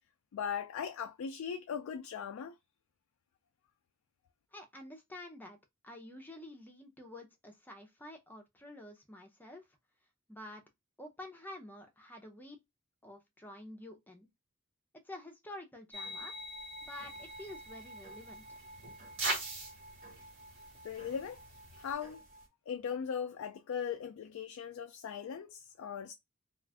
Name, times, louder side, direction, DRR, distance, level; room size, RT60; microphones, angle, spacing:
voice 1, 0.3-2.5 20.8-21.4 21.8-22.2 22.7-26.1, left 7 dB, 85° left, 0.3 m, -39 dB
voice 2, 4.5-5.6 5.8-9.7 10.3-10.6 11.0-12.6 13.0-14.3 15.0-16.3 16.8-18.6, left 1 dB, 10° left, 0.6 m, -49 dB
sound 1, 15.9-22.5, left 1 dB, 40° right, 1.0 m, -49 dB
sound 2, 16.8-21.9, right 2 dB, 65° right, 1.5 m, -42 dB
2.4 x 2.4 x 3.4 m
head